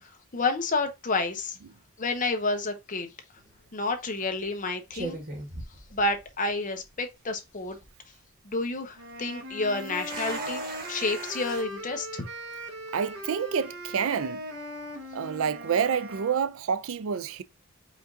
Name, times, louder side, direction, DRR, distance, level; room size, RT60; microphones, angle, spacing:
voice 1, 0.0-1.6 2.0-3.1 3.7-5.2 5.9-7.8 8.4-10.6 10.9-12.3, left 3 dB, 35° left, 0.8 m, -30 dB
sound 1, 3.4-3.7 4.4-4.6 4.9-6.5 6.8-6.9 7.5-7.9 9.6-11.6, right 2 dB, 45° right, 1.3 m, -39 dB
sound 2, 9.0-16.4, equal, 80° right, 1.2 m, -39 dB
voice 2, 12.9-14.5 15.1-17.4, right 7 dB, 65° right, 0.4 m, -28 dB
5.0 x 2.6 x 3.6 m
head